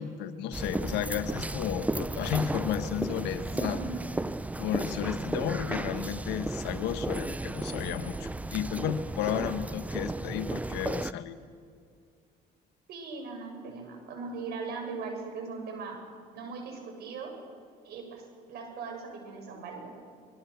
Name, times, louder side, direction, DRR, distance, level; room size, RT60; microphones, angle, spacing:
voice 1, 0.0-3.8 4.5-11.4, left 10 dB, 90° left, 10 dB, 1.4 m, -33 dB
sound 1, 0.5-11.1, right 2 dB, 10° right, 0.6 m, -34 dB
voice 2, 3.5-3.9 12.9-16.0 16.3-17.3 17.8-19.9, right 4 dB, 75° right, 3 dB, 7.1 m, -39 dB
25.5 x 22.5 x 7.1 m, 2.3 s
cardioid pair, 110°, 17 cm